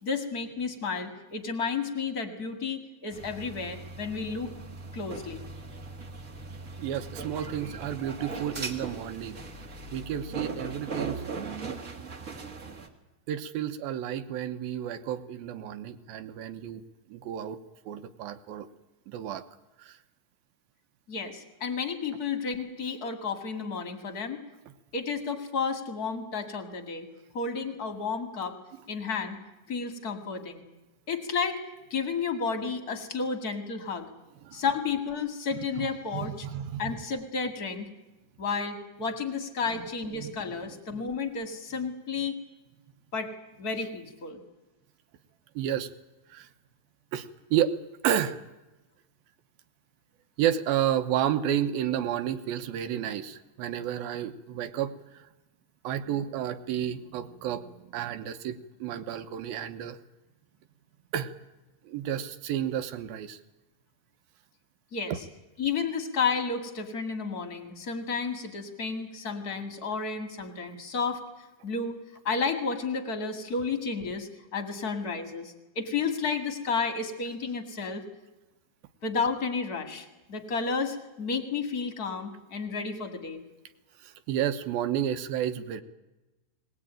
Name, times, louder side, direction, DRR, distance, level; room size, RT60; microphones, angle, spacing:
voice 1, 0.0-4.5 4.9-5.4 21.1-24.4 24.9-27.1 27.3-28.5 28.9-29.4 29.7-30.6 31.1-31.6 31.9-34.1 34.5-36.5 36.8-37.9 38.4-42.4 43.1-43.3 43.6-44.4 64.9-65.1 65.6-71.2 71.6-72.0 72.2-78.0 79.0-83.4, left 5 dB, 35° left, 6 dB, 1.6 m, -32 dB
sound 1, 3.1-12.9, right 3 dB, 40° right, 1.3 m, -39 dB
voice 2, 6.8-9.4 9.9-11.2 11.6-11.8 13.3-16.8 17.1-17.6 17.9-18.7 19.1-19.4 19.8-20.0 34.4-34.6 35.5-35.7 36.1-36.8 39.8-40.4 40.9-41.0 45.6-45.9 46.3-46.5 47.1-47.8 48.0-48.4 50.4-55.3 55.8-60.0 61.1-61.3 61.9-63.4 84.0-85.8, right 10 dB, 75° right, 9 dB, 2.6 m, -31 dB
21.0 x 19.5 x 8.9 m, 1.1 s
omnidirectional pair, 4.4 m